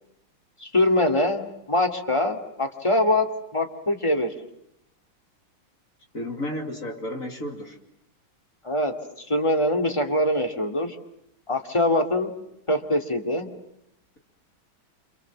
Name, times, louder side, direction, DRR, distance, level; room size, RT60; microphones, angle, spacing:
voice 1, 0.6-4.3 8.6-11.0 11.5-12.3 12.7-13.5, left 1 dB, 15° left, 5 dB, 2.5 m, -23 dB
voice 2, 6.1-7.8, left 1 dB, 40° left, 3 dB, 3.1 m, -32 dB
28.0 x 27.5 x 7.4 m, 0.79 s
omnidirectional pair, 2.2 m